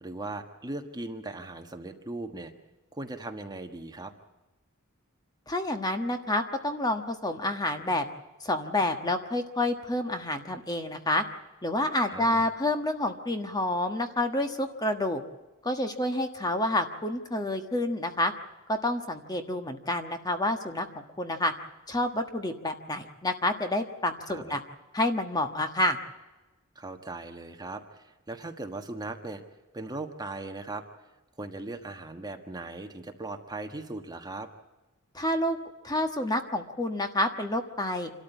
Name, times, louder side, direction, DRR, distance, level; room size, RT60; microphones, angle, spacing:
voice 1, 0.0-2.5 2.9-4.1 12.1-12.5 24.3-24.6 26.7-29.4 29.7-30.8 31.4-34.5, right 2 dB, 20° right, 5 dB, 1.4 m, -38 dB
voice 2, 5.5-8.1 8.4-11.2 11.6-15.2 15.6-18.3 18.7-20.9 21.2-21.5 21.9-24.6 24.9-26.0 35.1-35.6 35.8-38.1, left 1 dB, 20° left, 6 dB, 1.4 m, -28 dB
27.0 x 13.0 x 8.2 m, 1.1 s
head